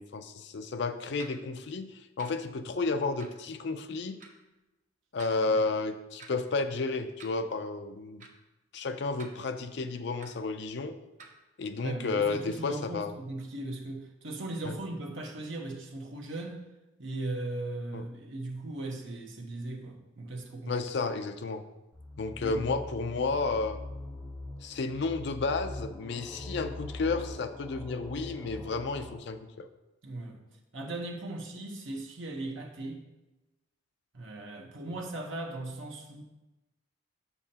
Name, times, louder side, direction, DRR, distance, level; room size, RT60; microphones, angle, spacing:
voice 1, 0.0-4.2 5.1-8.2 8.7-11.0 11.6-13.1 14.6-14.7 17.9-18.1 20.7-21.6 22.2-23.8 24.6-29.4, left 3 dB, 60° left, 8 dB, 0.4 m, -32 dB
sound 1, 1.2-1.4 2.2-2.3 3.2-3.4 4.2-4.3 5.2-5.4 6.2-6.3 7.2-7.4 8.2-8.3 9.2-9.3 10.2-10.3 11.2-11.4, right 4 dB, 40° right, 0.7 m, -49 dB
voice 2, 11.7-16.6 17.0-20.8 22.4-22.7 30.0-30.4 30.7-33.0 34.1-36.2, right 2 dB, 70° right, 1 dB, 1.0 m, -38 dB
sound 2, 21.9-29.2, left 2 dB, 5° left, 0.8 m, -42 dB
6.9 x 6.3 x 2.8 m, 1.0 s
head